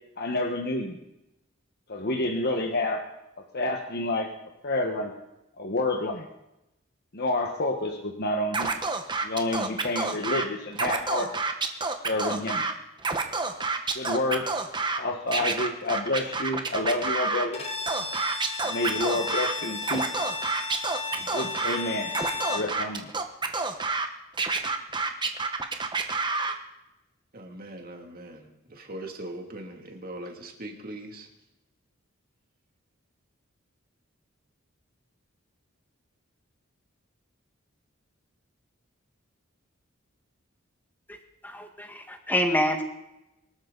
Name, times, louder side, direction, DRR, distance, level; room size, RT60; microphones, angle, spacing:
voice 1, 0.2-1.0 1.9-3.0 3.5-4.3 4.6-5.1 5.6-6.3 7.1-8.8 9.2-11.3 12.0-12.6 13.9-14.5 15.0-17.6 18.6-20.0 21.2-22.1 22.5-23.1, left 2 dB, 55° left, 2 dB, 1.4 m, -29 dB
Scratching (performance technique), 8.5-10.4 10.7-12.7 13.0-15.0 15.3-17.5 17.9-19.5 19.8-21.8 22.1-24.1 24.4-26.6, right 3 dB, 25° right, 1.3 m, -28 dB
Bowed string instrument, 17.5-22.7, left 4 dB, 30° left, 2.4 m, -34 dB
voice 2, 27.3-31.3, right 1 dB, 45° right, 2 dB, 2.7 m, -40 dB
voice 3, 41.5-42.8, left 1 dB, 10° left, 4 dB, 1.9 m, -26 dB
24.0 x 13.0 x 4.1 m, 0.89 s
head